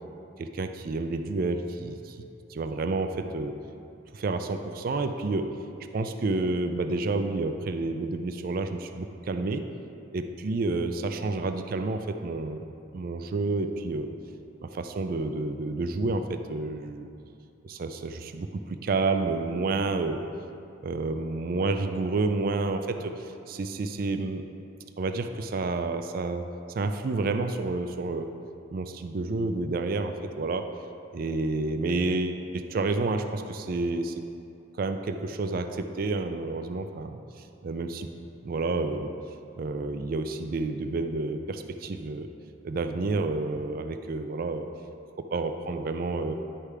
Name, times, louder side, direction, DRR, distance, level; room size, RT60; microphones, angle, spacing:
voice 1, 0.4-2.2 2.5-3.5 4.1-5.6 5.9-9.6 10.1-12.6 12.9-14.1 14.6-17.1 17.6-20.2 20.8-24.4 25.0-26.4 26.7-28.3 28.7-30.7 31.1-34.2 34.8-37.2 37.6-38.1 38.4-39.1 39.6-42.3 42.6-44.6 45.3-46.3, right 3 dB, 50° right, 7 dB, 0.4 m, -29 dB
9.9 x 3.3 x 4.8 m, 2.6 s
head